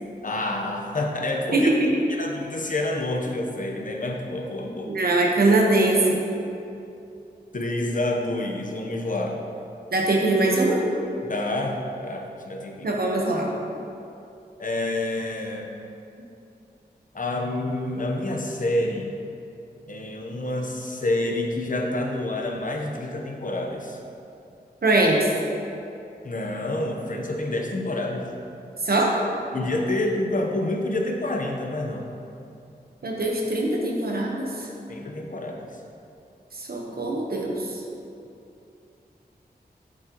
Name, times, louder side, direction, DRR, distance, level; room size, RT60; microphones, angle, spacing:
voice 1, 0.2-1.7 2.1-4.9 7.5-9.4 11.2-12.9 14.6-15.7 17.1-19.1 19.9-24.0 26.2-28.3 29.5-32.1 34.9-35.8, left 1 dB, 50° left, 0 dB, 1.0 m, -28 dB
voice 2, 1.5-1.9 4.9-6.2 9.9-10.8 12.8-13.5 24.8-25.3 28.8-29.1 33.0-34.5 36.5-37.8, right 2 dB, 65° right, -1 dB, 1.1 m, -22 dB
8.1 x 7.5 x 3.0 m, 2.7 s
wide cardioid pair, 65°, 17 cm